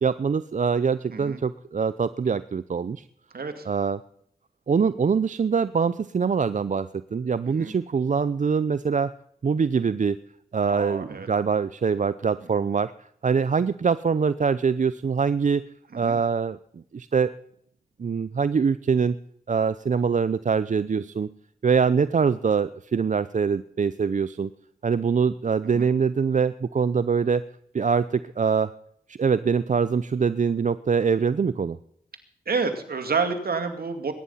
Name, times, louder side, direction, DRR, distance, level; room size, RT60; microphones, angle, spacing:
voice 1, 0.0-3.0 3.7-4.0 4.7-9.1 9.4-10.2 10.5-12.9 13.2-15.6 16.0-17.3 18.0-19.2 19.5-21.3 21.6-24.5 24.8-27.5 27.7-28.7 29.1-31.8, right 6 dB, 50° right, 15 dB, 0.6 m, -24 dB
voice 2, 1.1-1.4 3.3-3.7 7.5-7.7 10.7-11.3 12.5-12.7 15.9-16.2 25.7-25.9 32.5-34.1, right 4 dB, 70° right, 7 dB, 2.4 m, -29 dB
21.5 x 10.5 x 5.6 m, 0.70 s
cardioid pair, 50°, 16 cm